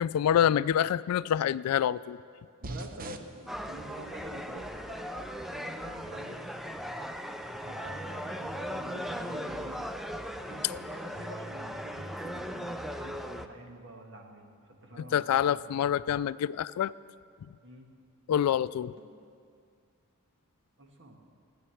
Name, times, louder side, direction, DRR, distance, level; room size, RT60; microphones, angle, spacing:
voice 1, 0.0-2.2 15.0-16.9 18.3-18.9, left 9 dB, 80° left, 17 dB, 0.3 m, -26 dB
sound 1, 2.6-11.3, right 2 dB, 40° right, 0.7 m, -50 dB
voice 2, 2.6-6.4 7.6-9.9 10.4-15.2 15.5-15.8 17.6-17.9 19.0-19.1 20.8-21.2, right 1 dB, 55° right, 2 dB, 1.6 m, -47 dB
sound 2, 3.5-13.5, equal, ahead, 0.4 m, -38 dB
14.0 x 9.7 x 7.1 m, 2.3 s
head